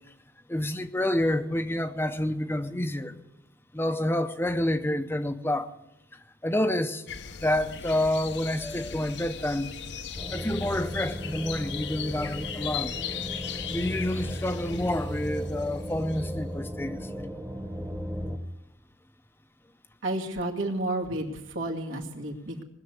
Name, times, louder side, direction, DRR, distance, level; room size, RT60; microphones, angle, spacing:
voice 1, 0.5-3.2 3.7-5.7 6.1-7.0 7.4-9.7 10.3-12.9 13.7-17.4, left 1 dB, 10° left, 0.6 m, -28 dB
sound 1, 7.1-16.5, left 7 dB, 60° left, 0.8 m, -38 dB
sound 2, 10.2-18.4, equal, 10° right, 1.0 m, -36 dB
voice 2, 20.0-22.6, right 1 dB, 85° right, 2.3 m, -31 dB
19.5 x 6.9 x 9.5 m
head